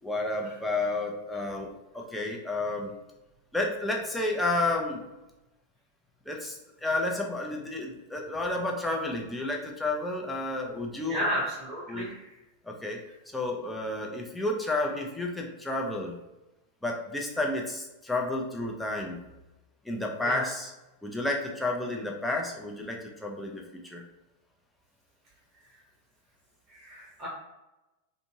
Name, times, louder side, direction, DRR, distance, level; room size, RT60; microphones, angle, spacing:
voice 1, 0.0-2.9 3.5-5.0 6.3-11.3 11.9-12.1 12.7-13.0 13.3-16.2 16.8-19.2 19.8-20.7 21.0-24.0, left 2 dB, 5° left, -1 dB, 0.6 m, -31 dB
voice 2, 11.1-12.2 20.2-20.4 26.8-27.3, equal, 30° right, -4 dB, 1.0 m, -32 dB
3.5 x 2.6 x 2.8 m, 1.0 s
figure-of-eight pair, 90°, 0 cm